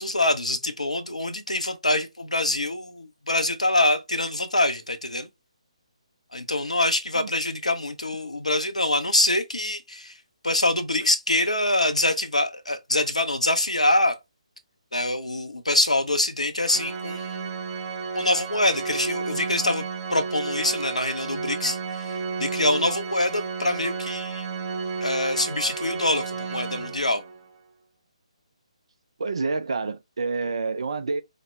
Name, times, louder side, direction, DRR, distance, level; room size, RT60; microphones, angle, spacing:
voice 1, 0.0-5.3 6.3-10.2 10.4-14.2 14.9-17.5 18.1-19.8 20.1-24.5 25.0-27.2, left 1 dB, 85° left, 0.6 m, -25 dB
Organ, 16.6-27.5, right 5 dB, 30° right, 0.8 m, -32 dB
voice 2, 29.2-31.2, right 4 dB, 55° right, 0.4 m, -28 dB
4.1 x 2.1 x 3.1 m
figure-of-eight pair, 140°, 4 cm